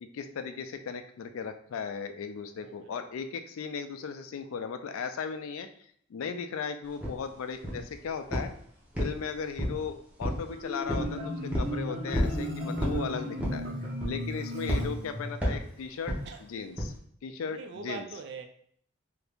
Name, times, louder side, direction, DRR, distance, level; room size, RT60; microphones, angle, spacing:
voice 1, 0.0-5.7 6.1-8.5 9.0-13.6 14.0-16.9 17.2-18.1, left 6 dB, 80° left, 0.3 m, -37 dB
voice 2, 2.6-3.0 16.2-16.4 17.5-18.4, right 5 dB, 55° right, 0.3 m, -42 dB
sound 1, 7.0-7.2 7.6-7.9 8.3-8.6 8.9-9.8 10.2-10.5 10.9-11.1 11.5-11.7 12.1-12.4 12.8-13.0 13.4-13.7 14.0-14.3 14.7-14.9 15.4-15.7 16.1-16.3 16.8-16.9, equal, 5° right, 0.6 m, -30 dB
Marimba xylophone, 10.5-15.6, equal, 40° right, 1.0 m, -35 dB
2.8 x 2.5 x 3.4 m
head